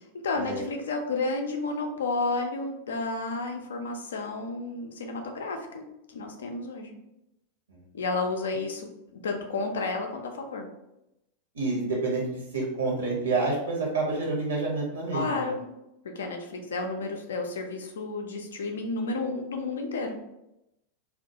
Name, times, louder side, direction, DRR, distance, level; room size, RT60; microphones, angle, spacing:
voice 1, 0.2-6.9 7.9-10.7 15.1-15.6 16.0-20.2, left 3 dB, 65° left, 3 dB, 0.3 m, -31 dB
voice 2, 11.5-15.5, right 3 dB, 70° right, -2 dB, 0.8 m, -28 dB
2.2 x 2.1 x 2.7 m, 0.87 s
figure-of-eight pair, 90°, 0 cm